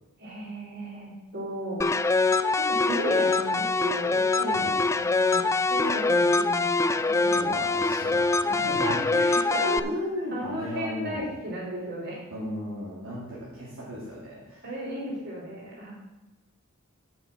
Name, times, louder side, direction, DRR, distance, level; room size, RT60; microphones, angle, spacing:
voice 1, 0.2-7.7 8.8-9.7 10.3-12.2 14.6-15.9, right 1 dB, 50° right, -5 dB, 4.3 m, -35 dB
sound 1, 1.8-9.8, left 3 dB, 15° left, 0.3 m, -24 dB
voice 2, 7.3-9.0 9.6-11.3 12.3-14.6, left 1 dB, 80° right, -6 dB, 2.6 m, -35 dB
8.9 x 7.0 x 6.3 m, 1.1 s
head